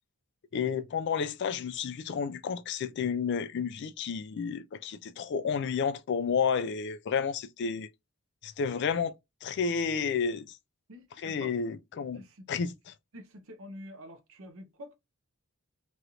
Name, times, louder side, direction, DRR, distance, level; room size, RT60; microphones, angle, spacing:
voice 1, 0.5-7.9 8.4-9.1 9.4-10.5 11.2-12.2 12.5-12.7, left 6 dB, 50° left, 0.3 m, -31 dB
voice 2, 10.9-11.5 12.1-12.5 13.1-14.9, equal, 60° right, 0.7 m, -47 dB
3.1 x 2.4 x 2.8 m
head